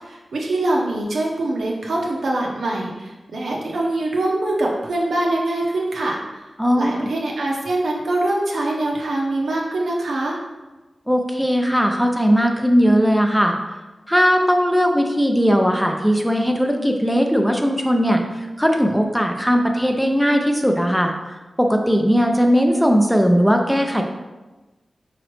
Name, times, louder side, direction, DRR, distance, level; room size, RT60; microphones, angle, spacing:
voice 1, 0.0-6.4 6.8-10.4, right 2 dB, 90° right, -1 dB, 0.7 m, -23 dB
voice 2, 6.6-7.1 11.1-13.5 14.1-18.2 18.6-21.1 21.6-24.0, equal, ahead, 3 dB, 0.4 m, -18 dB
4.8 x 3.0 x 3.1 m, 1.2 s
wide cardioid pair, 125°, 0 cm